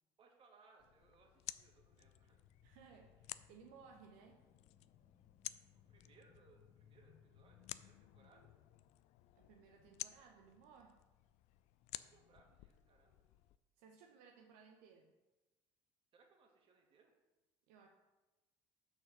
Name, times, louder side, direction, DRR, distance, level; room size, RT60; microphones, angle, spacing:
voice 1, 0.2-2.4 5.7-8.5 11.9-13.2 16.1-17.1, right 4 dB, 45° right, 1 dB, 2.0 m, -69 dB
sound 1, 0.8-13.6, left 16 dB, 65° left, 0.4 m, -54 dB
sound 2, 1.5-8.9, left 9 dB, 45° left, 0.8 m, -68 dB
voice 2, 2.6-4.4 9.4-11.0 13.8-15.1 17.7-17.9, right 6 dB, 75° right, 2 dB, 0.8 m, -61 dB
6.1 x 4.6 x 6.6 m, 1.1 s
hypercardioid pair, 70°, 13 cm